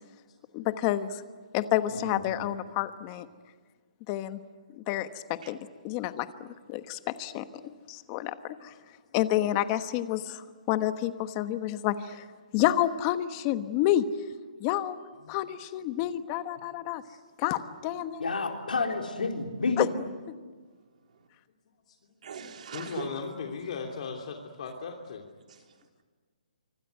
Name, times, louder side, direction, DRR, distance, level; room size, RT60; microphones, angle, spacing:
voice 1, 0.5-1.2 1.5-3.3 4.1-4.4 4.8-5.6 5.8-7.4 7.9-8.7 9.1-12.2 12.5-14.1 14.6-15.0 15.3-17.0 17.4-18.2 19.8-19.9, left 13 dB, 25° left, 11 dB, 1.2 m, -29 dB
voice 2, 1.9-2.5 18.2-19.8, left 4 dB, 90° left, 3 dB, 4.1 m, -30 dB
voice 3, 22.2-23.1 25.5-25.8, right 6 dB, 55° right, 3 dB, 3.8 m, -40 dB
voice 4, 22.7-25.2, left 5 dB, 50° left, 2 dB, 3.0 m, -37 dB
25.5 x 25.0 x 9.2 m, 1.5 s
hypercardioid pair, 160°, 5 cm